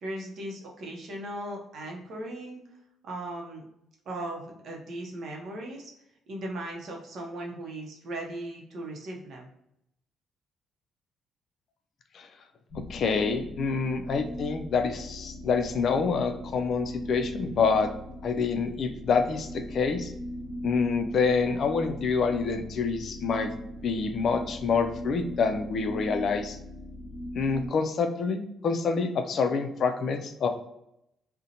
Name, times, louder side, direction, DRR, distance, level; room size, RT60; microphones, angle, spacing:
voice 1, 0.0-2.6 3.0-3.6 4.1-5.9 6.3-9.5, right 1 dB, 65° right, 0 dB, 0.6 m, -38 dB
sound 1, 12.7-27.7, equal, 35° left, 0.9 m, -39 dB
voice 2, 12.9-17.9 18.2-20.1 20.6-23.5 23.8-26.6 27.4-30.5, left 5 dB, 60° left, 7 dB, 0.3 m, -27 dB
2.7 x 2.1 x 2.5 m, 0.79 s
cardioid pair, 90°, 0 cm